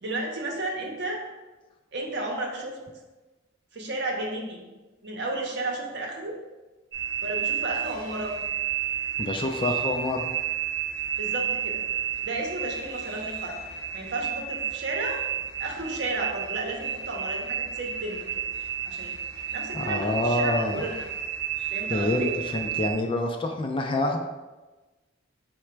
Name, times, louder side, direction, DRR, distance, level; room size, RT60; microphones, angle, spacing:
voice 1, 0.0-1.2 1.9-2.8 3.7-4.6 5.0-6.4 7.2-8.3 11.2-11.8 12.2-13.6 13.9-15.2 15.6-18.4 18.9-19.1 19.5-21.0 21.7-22.4, right 2 dB, 60° right, 0 dB, 0.8 m, -32 dB
sound 1, 6.9-22.9, right 9 dB, 20° right, 1.4 m, -31 dB
voice 2, 9.2-10.2 19.7-20.9 21.9-24.2, left 2 dB, 25° left, 4 dB, 0.3 m, -27 dB
4.8 x 2.2 x 4.4 m, 1.2 s
head